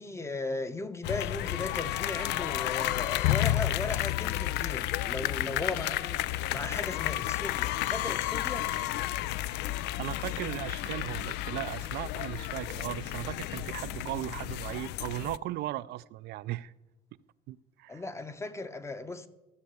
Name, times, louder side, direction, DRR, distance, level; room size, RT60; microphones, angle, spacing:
voice 1, 0.0-8.7 17.9-19.3, left 3 dB, 15° left, 0.8 m, -37 dB
sound 1, 1.0-15.4, left 15 dB, 85° left, 0.4 m, -32 dB
voice 2, 10.0-16.7 17.5-18.0, right 15 dB, 75° right, 0.4 m, -37 dB
14.5 x 6.6 x 8.1 m
cardioid pair, 110°, 17 cm